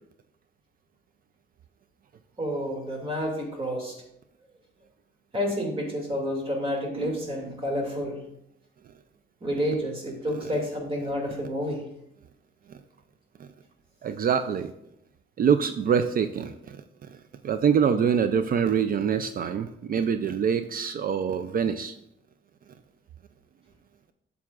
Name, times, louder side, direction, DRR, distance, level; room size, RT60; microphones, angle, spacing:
voice 1, 2.4-4.0 5.3-8.2 9.4-11.8, equal, 30° right, 1 dB, 2.3 m, -29 dB
voice 2, 14.0-14.7 15.4-16.8 17.4-21.9, right 7 dB, 45° right, 10 dB, 0.4 m, -25 dB
8.8 x 7.0 x 2.4 m, 0.79 s
cardioid pair, 90°, 20 cm